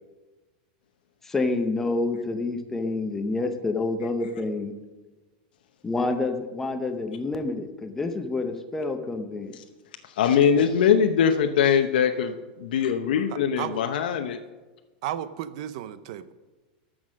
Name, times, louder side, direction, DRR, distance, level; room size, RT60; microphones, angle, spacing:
voice 1, 1.2-4.7 5.8-9.6, left 3 dB, 10° left, 7 dB, 0.6 m, -28 dB
voice 2, 10.0-14.4, left 7 dB, 80° left, 5 dB, 0.8 m, -22 dB
voice 3, 15.0-16.3, right 11 dB, 45° right, 14 dB, 0.6 m, -33 dB
13.5 x 6.3 x 6.3 m, 1.2 s
supercardioid pair, 180°, 5 cm